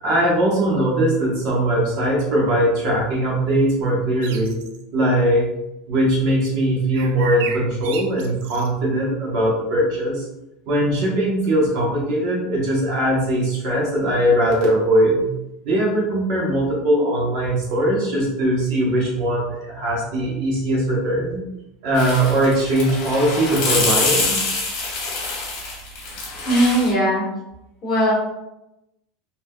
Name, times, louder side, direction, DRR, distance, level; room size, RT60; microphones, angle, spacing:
voice 1, 0.0-4.6 4.9-5.5 5.9-10.3 10.7-15.3 15.6-21.5 21.8-24.4, right 1 dB, 50° right, -3 dB, 1.0 m, -20 dB
sound 1, 4.2-4.8 6.9-8.7, right 6 dB, 80° right, 0.4 m, -33 dB
sound 2, 22.0-26.9, left 3 dB, 55° left, 1.2 m, -25 dB
voice 2, 26.4-27.3 27.8-28.1, equal, 20° left, -6 dB, 1.4 m, -18 dB
3.5 x 2.8 x 2.2 m, 0.90 s
supercardioid pair, 165°, 0 cm